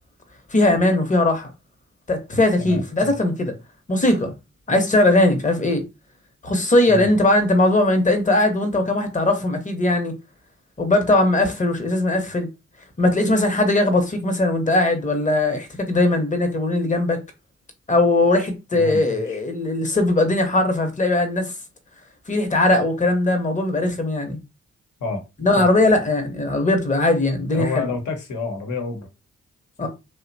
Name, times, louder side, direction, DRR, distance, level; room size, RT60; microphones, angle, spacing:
voice 1, 0.5-1.5 2.1-3.5 3.9-4.3 4.7-5.8 6.4-10.1 10.8-12.5 13.0-17.2 17.9-21.5 22.3-24.4 25.4-27.9 29.8-29.9, left 2 dB, 25° left, 0.8 m, -19 dB
voice 2, 2.6-3.1 6.9-7.1 18.7-19.4 25.0-25.2 25.5-25.7 27.5-29.1 29.8-29.9, left 3 dB, 65° left, 0.9 m, -29 dB
2.7 x 2.1 x 2.6 m
supercardioid pair, 40°, 32 cm